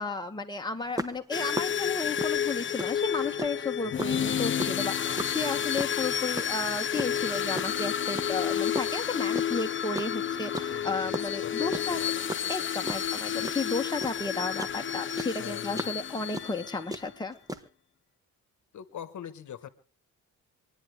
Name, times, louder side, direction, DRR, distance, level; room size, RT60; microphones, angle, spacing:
voice 1, 0.0-12.0 12.5-17.3, left 3 dB, 15° left, 3 dB, 1.7 m, -33 dB
sound 1, 1.0-3.7 4.0-7.8 8.1-9.7 10.0-14.8 15.1-17.6, equal, 10° right, 1.3 m, -36 dB
sound 2, 1.3-16.9, left 9 dB, 40° left, 0.6 m, -31 dB
voice 2, 10.7-12.9 14.1-14.2 15.4-15.9 18.7-19.7, left 9 dB, 65° left, 12 dB, 1.3 m, -44 dB
26.0 x 10.0 x 3.4 m, 0.38 s
cardioid pair, 85°, 32 cm